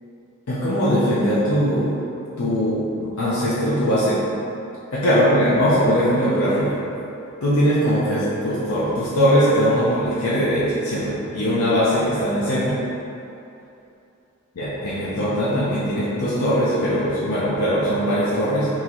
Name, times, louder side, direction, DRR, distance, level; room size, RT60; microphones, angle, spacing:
voice 1, 0.5-1.9 2.4-4.2 4.9-6.8 7.4-12.7 14.6-18.7, equal, 80° left, -9 dB, 0.6 m, -20 dB
3.7 x 2.9 x 2.9 m, 2.7 s
head